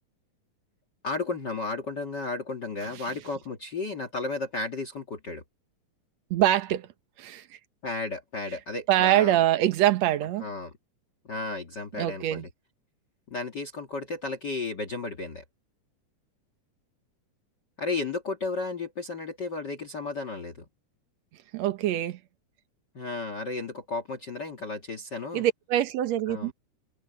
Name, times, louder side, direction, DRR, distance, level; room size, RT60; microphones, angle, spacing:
voice 1, 1.0-5.4 7.8-9.4 10.4-10.7 11.2-12.4 13.3-15.4 17.8-20.6 22.9-25.4 26.3-26.5, left 3 dB, 40° left, 2.1 m, -33 dB
voice 2, 6.3-6.9 7.2-7.4 8.9-10.5 12.0-12.5 21.5-22.2 25.3-26.5, right 13 dB, 65° right, 2.1 m, -24 dB
omnidirectional pair, 3.6 m